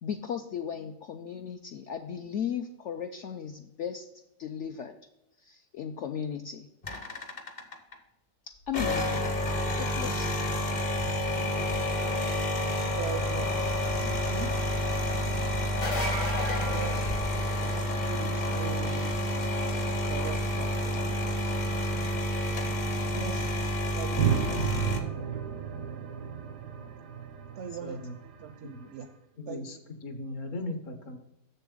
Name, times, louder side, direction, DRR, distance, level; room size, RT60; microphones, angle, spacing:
voice 1, 0.0-4.1 4.4-4.9 5.4-6.7 8.7-10.4, left 8 dB, 70° left, 6 dB, 0.7 m, -36 dB
sound 1, 6.8-7.9 8.6-25.0, equal, 35° left, 0.8 m, -29 dB
voice 2, 12.6-13.9 14.2-14.5 16.7-17.2 17.6-19.1 20.0-21.2 23.1-23.5 23.9-24.8 27.6-29.1 29.5-29.7, right 6 dB, 65° right, 6 dB, 0.7 m, -40 dB
sound 2, 15.7-17.9 23.4-23.5 25.3-25.4, left 1 dB, 90° left, 2.4 m, -34 dB
sound 3, 24.2-28.8, right 8 dB, 90° right, 1.4 m, -33 dB
voice 3, 27.8-28.2 28.6-28.9 29.4-31.2, left 2 dB, 55° left, 7 dB, 1.3 m, -38 dB
7.0 x 6.8 x 3.7 m, 0.87 s
omnidirectional pair, 1.7 m